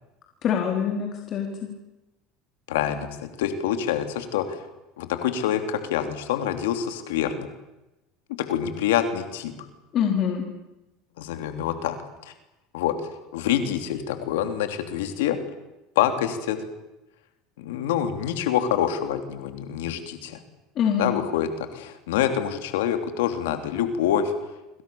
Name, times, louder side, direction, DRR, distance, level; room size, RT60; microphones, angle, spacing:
voice 1, 0.4-1.7 9.9-10.5 20.8-21.1, left 8 dB, 45° left, 1 dB, 4.1 m, -25 dB
voice 2, 2.7-4.6 5.0-7.5 8.4-9.7 11.2-12.0 12.7-12.9 13.3-15.4 15.9-16.6 17.6-20.4 21.0-24.3, left 10 dB, 90° left, 8 dB, 3.1 m, -26 dB
25.5 x 25.5 x 7.1 m, 0.98 s
supercardioid pair, 125°, 0 cm